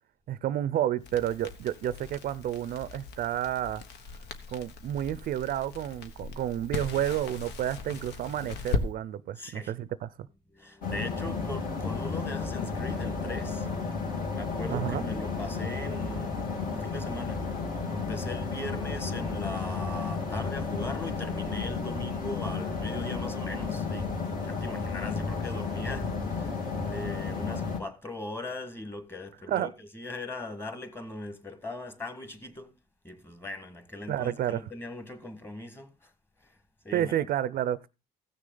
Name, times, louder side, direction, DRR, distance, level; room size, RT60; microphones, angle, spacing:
voice 1, 0.3-3.8 4.5-10.1 14.7-15.0 29.5-29.7 34.1-34.6 36.9-37.9, right 11 dB, 60° right, 0.5 m, -30 dB
Crackle, 1.0-8.9, left 4 dB, 80° left, 1.3 m, -38 dB
voice 2, 9.3-9.7 10.5-26.6 26.9-32.7 33.0-36.1 36.4-36.6 36.8-37.2, left 1 dB, 15° left, 1.7 m, -40 dB
sound 1, 10.8-27.8, left 4 dB, 60° left, 2.9 m, -32 dB
15.5 x 6.4 x 3.9 m
cardioid pair, 110°, 17 cm